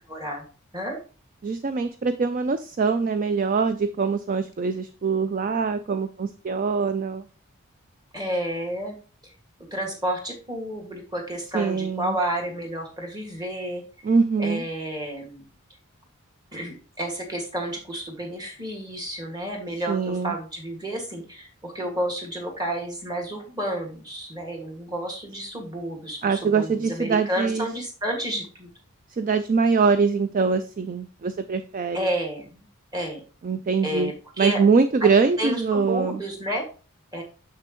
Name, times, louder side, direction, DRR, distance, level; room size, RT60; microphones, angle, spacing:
voice 1, 0.1-0.4 0.7-1.0 8.1-9.0 9.2-9.3 9.7-13.8 14.4-15.5 16.5-28.7 31.9-32.7 32.9-33.2 33.8-34.6 35.0-35.1 35.4-36.7 37.1-37.2, right 1 dB, 20° right, 1.9 m, -31 dB
voice 2, 1.4-7.2 11.5-12.2 14.0-14.6 19.9-20.3 26.2-27.7 29.2-32.1 33.4-34.1 34.4-36.2, right 5 dB, 35° right, 0.3 m, -23 dB
6.8 x 6.5 x 3.0 m
head